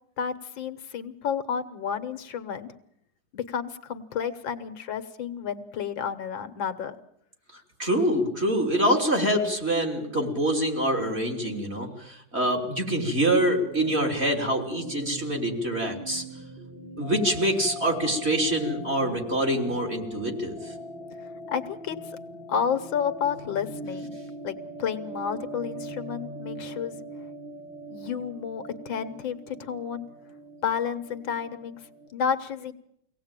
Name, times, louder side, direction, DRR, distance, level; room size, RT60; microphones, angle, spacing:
voice 1, 0.2-2.7 3.3-7.0 21.5-22.0 22.5-24.1 24.4-27.0 27.9-30.1 30.6-31.8 32.1-32.7, left 7 dB, 75° left, 10 dB, 1.9 m, -31 dB
voice 2, 7.5-16.2 17.0-20.7, right 1 dB, 30° right, 1 dB, 3.4 m, -25 dB
sound 1, 12.6-32.1, right 1 dB, 85° right, 5.6 m, -41 dB
24.0 x 17.5 x 8.9 m, 0.76 s
omnidirectional pair, 2.1 m